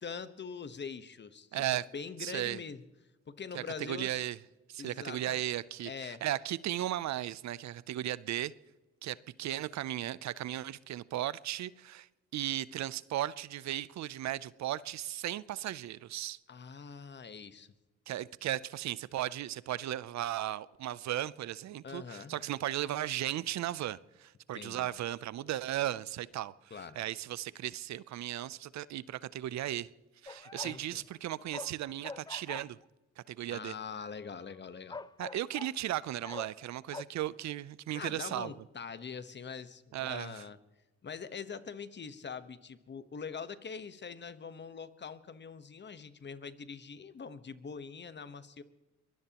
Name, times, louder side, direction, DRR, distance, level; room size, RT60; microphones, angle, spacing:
voice 1, 0.0-1.6 1.9-2.8 3.3-4.2 4.8-5.4 5.8-6.2 16.5-17.7 21.8-22.4 24.5-24.9 26.7-27.0 30.6-31.0 33.5-35.0 37.9-40.6 41.0-48.6, left 6 dB, 35° left, 1.2 m, -43 dB
voice 2, 1.5-1.8 2.2-2.6 3.5-4.4 4.7-8.5 9.0-16.4 18.1-29.9 30.2-32.8 33.3-33.7 35.2-38.5 39.9-40.4, right 13 dB, 65° right, 0.6 m, -36 dB
sound 1, 30.3-30.9 31.1-32.8 34.4-34.5 34.9-35.8 36.2-36.7 36.9-37.0, left 3 dB, 15° left, 0.4 m, -44 dB
23.0 x 19.5 x 3.0 m
cardioid pair, 90°, 30 cm